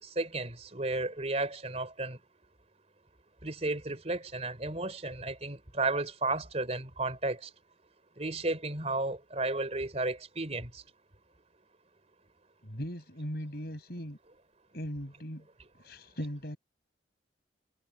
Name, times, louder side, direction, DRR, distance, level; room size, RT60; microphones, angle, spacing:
voice 1, 0.0-2.2 3.4-7.5 8.2-10.8, right 2 dB, 35° right, 3.7 m, -33 dB
voice 2, 12.6-14.2 14.7-15.5 15.8-16.6, equal, 55° left, 7.4 m, -39 dB
head